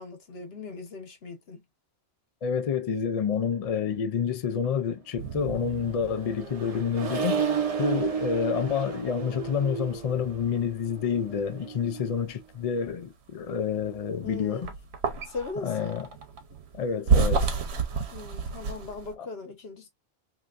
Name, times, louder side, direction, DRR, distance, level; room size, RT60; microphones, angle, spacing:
voice 1, 0.0-1.6 14.2-14.7 15.3-16.1 18.1-19.9, left 4 dB, 65° left, 1.2 m, -39 dB
voice 2, 2.4-7.4 7.8-14.7 15.6-16.1 16.7-17.6 19.2-19.3, left 7 dB, 50° left, 0.4 m, -28 dB
sound 1, 5.2-13.0 13.4-19.1, right 5 dB, 75° right, 1.0 m, -32 dB
Accelerating revving vroom, 5.6-12.2, right 6 dB, 40° right, 0.7 m, -33 dB
3.3 x 2.8 x 2.4 m
omnidirectional pair, 1.1 m